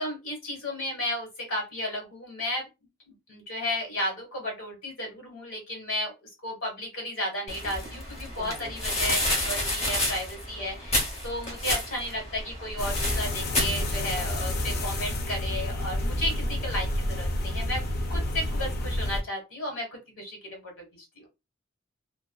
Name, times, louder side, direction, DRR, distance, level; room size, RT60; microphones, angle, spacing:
voice 1, 0.0-2.7 3.1-17.8 18.1-21.3, left 1 dB, 70° left, 1.4 m, -34 dB
sound 1, 7.5-14.3, left 1 dB, 30° left, 0.8 m, -30 dB
voice 2, 8.4-9.3 16.2-16.6, right 3 dB, 35° right, 0.5 m, -48 dB
sound 2, 12.8-19.2, left 1 dB, 50° left, 0.5 m, -29 dB
2.4 x 2.4 x 2.2 m
head